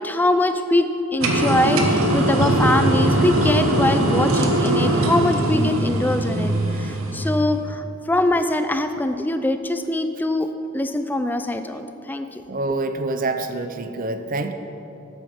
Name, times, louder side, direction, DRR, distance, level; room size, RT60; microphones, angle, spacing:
voice 1, 0.0-12.4, left 1 dB, 10° left, 9 dB, 0.3 m, -23 dB
sound 1, 1.2-7.5, right 1 dB, 75° right, 1.1 m, -20 dB
voice 2, 12.5-14.5, right 2 dB, 40° right, 8 dB, 0.5 m, -26 dB
8.4 x 8.3 x 5.6 m, 2.9 s
head